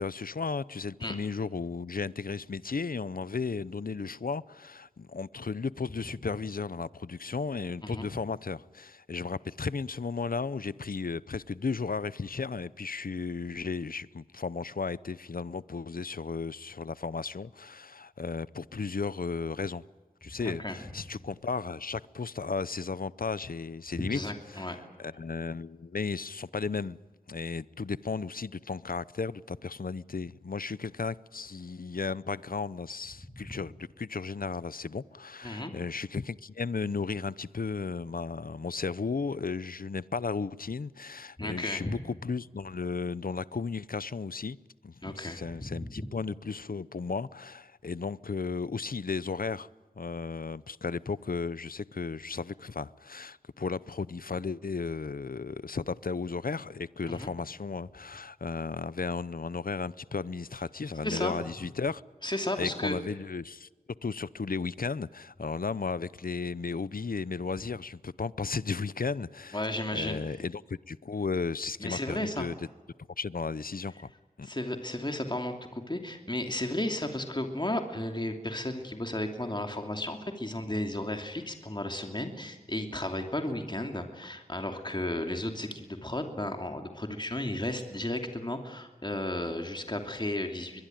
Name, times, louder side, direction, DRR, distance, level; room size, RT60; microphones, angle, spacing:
voice 1, 0.0-19.8 20.2-24.2 24.5-27.0 27.3-44.6 44.8-49.7 50.0-62.0 62.6-63.7 64.0-69.6 69.9-72.6 73.2-74.1 74.4-74.5, left 4 dB, 70° left, 0.7 m, -34 dB
voice 2, 20.4-20.8 23.9-24.8 33.3-33.6 35.4-35.7 41.4-42.0 45.0-46.1 57.1-57.3 61.0-61.4 62.2-63.0 69.5-70.2 71.8-72.5 74.4-90.8, left 1 dB, 30° left, 2.8 m, -34 dB
22.5 x 22.0 x 9.2 m
wide cardioid pair, 45°, 15 cm